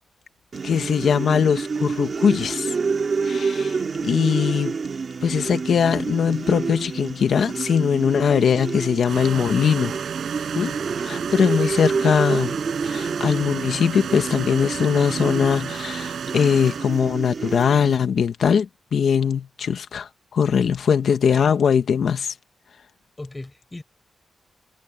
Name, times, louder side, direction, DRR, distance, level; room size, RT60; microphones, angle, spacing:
sound 1, 0.5-18.0, right 5 dB, 45° right, 2.1 m, -28 dB
voice 1, 0.6-2.7 3.2-4.7 5.2-10.0 10.5-12.6 12.8-22.3, left 7 dB, 70° left, 1.3 m, -21 dB
sound 2, 9.0-17.2, right 8 dB, 85° right, 6.9 m, -33 dB
voice 2, 21.1-21.5 23.2-23.8, left 2 dB, 15° left, 7.8 m, -38 dB
wide cardioid pair, 125°, 0 cm